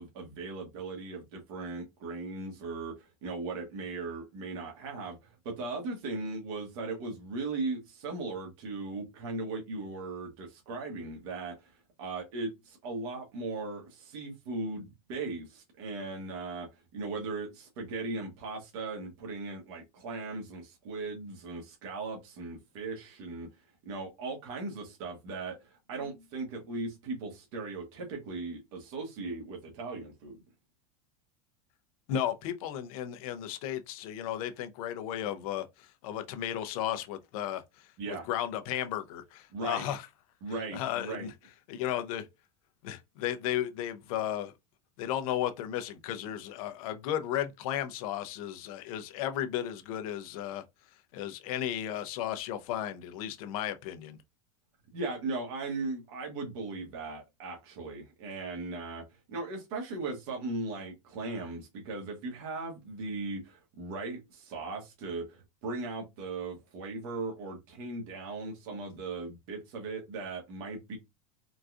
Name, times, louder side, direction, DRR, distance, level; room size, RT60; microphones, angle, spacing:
voice 1, 0.0-23.5 23.8-30.4 38.0-38.2 39.5-39.8 40.4-41.3 54.9-71.0, right 3 dB, 65° right, 1.3 m, -38 dB
voice 2, 32.1-37.6 38.1-40.0 40.7-41.3 41.7-42.3 42.8-44.5 45.0-50.6 51.1-54.2, left 11 dB, 70° left, 0.7 m, -34 dB
3.9 x 2.3 x 2.5 m
supercardioid pair, 120°, 19 cm